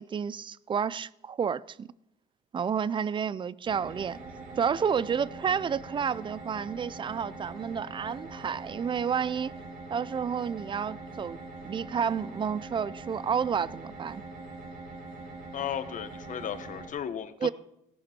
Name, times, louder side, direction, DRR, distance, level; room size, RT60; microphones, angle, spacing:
voice 1, 0.0-1.9 2.5-4.2 4.6-9.5 9.9-11.4 11.6-14.2 17.4-17.5, right 7 dB, 30° right, 0.4 m, -30 dB
sound 1, 3.6-16.9, right 3 dB, 55° right, 2.8 m, -43 dB
voice 2, 15.5-17.5, left 9 dB, 50° left, 1.1 m, -35 dB
16.5 x 11.5 x 4.4 m
cardioid pair, 110°, 17 cm